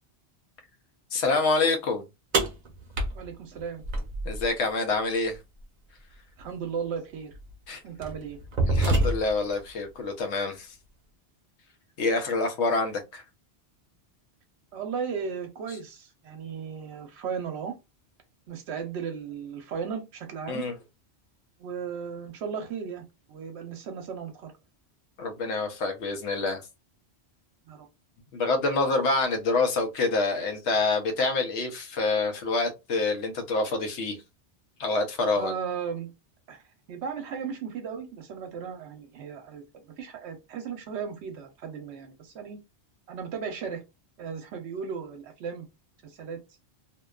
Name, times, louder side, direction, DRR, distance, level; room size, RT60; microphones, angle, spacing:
voice 1, 1.1-2.1 4.2-5.4 7.7-7.8 8.7-10.7 12.0-13.2 20.5-20.8 25.2-26.6 28.3-34.2 34.8-35.5, left 3 dB, 90° left, 1.0 m, -26 dB
sound 1, 2.3-4.5 6.4-6.5 7.3-7.5 8.0-9.5, right 2 dB, 50° right, 0.6 m, -26 dB
voice 2, 3.1-3.8 6.4-7.4 7.8-8.4 14.7-17.7 18.5-20.6 21.6-24.5 27.7-27.9 35.4-36.1 36.5-36.6 36.9-42.6 43.1-43.8 44.2-45.7 46.0-46.4, right 6 dB, 85° right, 0.9 m, -36 dB
2.7 x 2.2 x 2.3 m
omnidirectional pair, 1.1 m